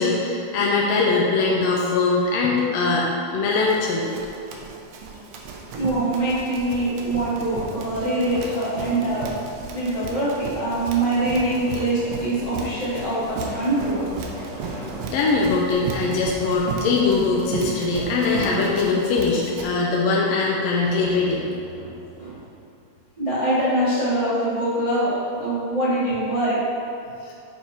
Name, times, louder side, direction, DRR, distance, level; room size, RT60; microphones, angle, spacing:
voice 1, 0.0-4.1 15.1-21.5 27.2-27.3, left 3 dB, 75° left, -3 dB, 1.5 m, -21 dB
Run, 3.5-19.7, right 4 dB, 75° right, 1.6 m, -35 dB
voice 2, 5.7-9.3 9.7-14.0 21.7-21.9 22.2-22.4 23.2-26.6, right 1 dB, 40° right, -10 dB, 0.5 m, -24 dB
sound 1, 9.6-10.4 11.2-11.3 12.2-12.3 12.9-17.0 17.3-17.4 20.7-23.5, right 1 dB, 60° right, 2.7 m, -42 dB
7.2 x 4.6 x 4.4 m, 2.6 s
omnidirectional pair, 3.7 m